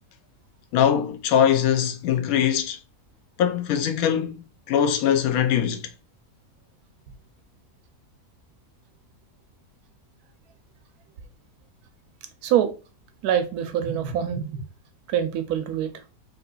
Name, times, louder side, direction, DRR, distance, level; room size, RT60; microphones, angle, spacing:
voice 1, 0.7-2.8 3.4-5.9, left 9 dB, 70° left, 1.0 m, -22 dB
voice 2, 13.2-14.6 15.1-15.9, right 9 dB, 85° right, 1.1 m, -24 dB
3.7 x 2.8 x 2.3 m
omnidirectional pair, 1.6 m